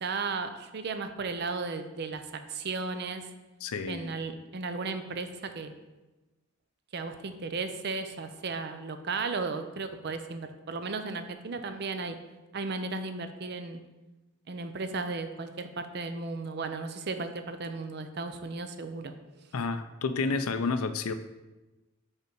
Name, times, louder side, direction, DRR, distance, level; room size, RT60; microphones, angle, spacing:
voice 1, 0.0-3.3 3.9-5.7 6.9-12.2 12.5-13.8 14.5-19.1, right 4 dB, 50° right, 8 dB, 0.5 m, -35 dB
voice 2, 3.6-4.2 19.5-21.1, left 4 dB, 90° left, 10 dB, 0.5 m, -30 dB
5.5 x 5.1 x 4.6 m, 1.1 s
head